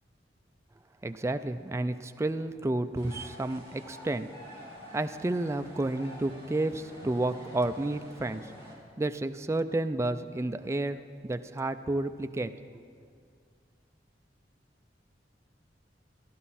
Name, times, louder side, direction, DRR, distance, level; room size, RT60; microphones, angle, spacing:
voice 1, 1.0-4.3 4.9-8.5 9.0-12.5, right 2 dB, 15° right, 9 dB, 0.3 m, -31 dB
sound 1, 3.0-8.7, equal, 30° left, 3.4 m, -48 dB
14.0 x 11.0 x 4.2 m, 2.1 s
head